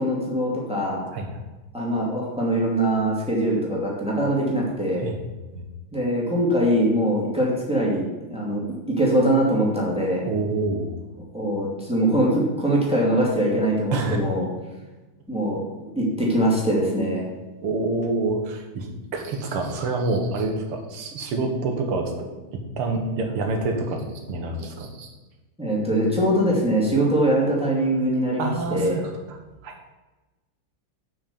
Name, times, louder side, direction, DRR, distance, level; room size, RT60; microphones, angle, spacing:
voice 1, 0.0-1.1 1.7-5.0 5.9-10.2 11.3-14.5 15.3-17.3 25.6-29.0, right 1 dB, 5° right, -4 dB, 2.3 m, -22 dB
voice 2, 10.3-10.9 13.9-14.2 17.6-18.9 19.1-22.1 22.5-25.1 28.4-29.0 29.3-29.4 29.6-29.8, right 3 dB, 80° right, 3 dB, 2.2 m, -27 dB
7.3 x 6.1 x 6.9 m, 1.2 s
omnidirectional pair, 2.4 m